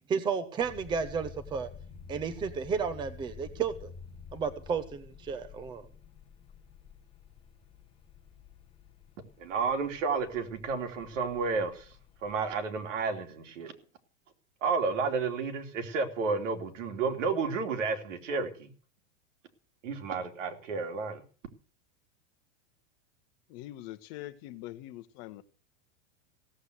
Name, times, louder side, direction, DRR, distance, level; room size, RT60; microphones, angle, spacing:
voice 1, 0.1-1.7 2.1-3.9 4.3-5.9, right 6 dB, 10° right, 0.8 m, -32 dB
sound 1, 0.6-12.6, left 6 dB, 15° left, 1.4 m, -50 dB
voice 2, 9.4-11.9 12.2-13.7 14.6-18.7 19.8-21.2, right 4 dB, 75° right, 3.2 m, -31 dB
voice 3, 23.5-25.4, left 15 dB, 35° left, 1.1 m, -43 dB
16.5 x 8.1 x 8.0 m
supercardioid pair, 165°, 38 cm